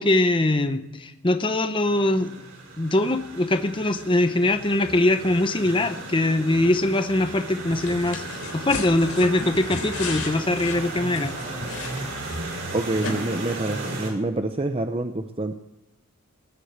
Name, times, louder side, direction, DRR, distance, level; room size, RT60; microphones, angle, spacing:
voice 1, 0.0-2.3 2.8-11.3, left 1 dB, 25° left, 9 dB, 0.8 m, -22 dB
sound 1, 1.8-14.1, right 2 dB, 55° right, 4.8 m, -35 dB
sound 2, 7.7-12.6 13.0-13.1, left 3 dB, 75° left, 3.5 m, -35 dB
voice 2, 12.7-15.5, right 2 dB, 25° right, 6 dB, 0.7 m, -27 dB
20.0 x 8.2 x 8.1 m, 0.93 s
head